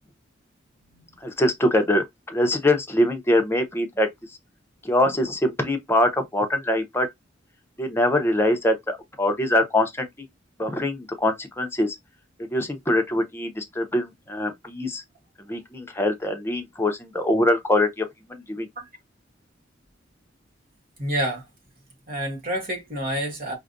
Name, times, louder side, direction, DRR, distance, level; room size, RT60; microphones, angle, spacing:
voice 1, 1.2-4.1 4.8-7.1 7.8-10.1 10.6-11.9 12.5-15.0 15.5-18.7, left 1 dB, 15° left, 0.8 m, -23 dB
voice 2, 21.0-21.4 22.1-23.6, equal, 50° right, 1.5 m, -28 dB
4.8 x 2.2 x 2.6 m
head